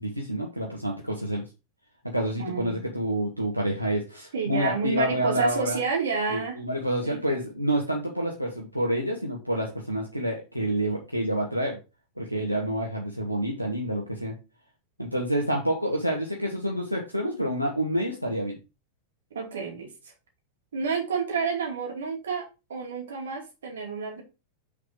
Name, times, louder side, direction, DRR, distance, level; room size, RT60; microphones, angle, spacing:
voice 1, 0.0-1.4 2.0-5.8 6.3-11.8 12.2-14.4 15.0-18.6, right 1 dB, 90° right, 0 dB, 1.2 m, -28 dB
voice 2, 2.4-2.9 4.3-6.6 7.0-7.2 19.3-19.9 20.7-24.2, right 5 dB, 65° right, 2 dB, 2.3 m, -30 dB
6.0 x 4.1 x 5.0 m, 0.28 s
figure-of-eight pair, 90°, 0 cm